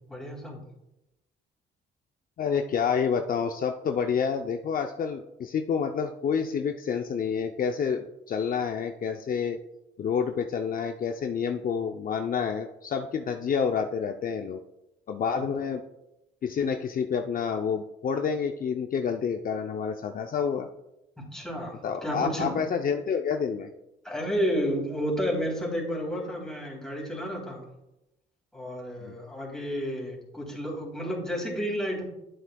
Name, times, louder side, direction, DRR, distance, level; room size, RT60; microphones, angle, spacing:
voice 1, 0.1-0.6 21.2-22.7 24.0-27.6 28.5-32.0, equal, 5° left, -3 dB, 3.1 m, -31 dB
voice 2, 2.4-9.6 10.0-14.6 15.1-15.8 16.4-20.7 21.8-23.7 29.0-29.1, left 6 dB, 45° left, 5 dB, 0.5 m, -28 dB
10.0 x 7.8 x 2.3 m, 0.91 s
cardioid pair, 90°, 20 cm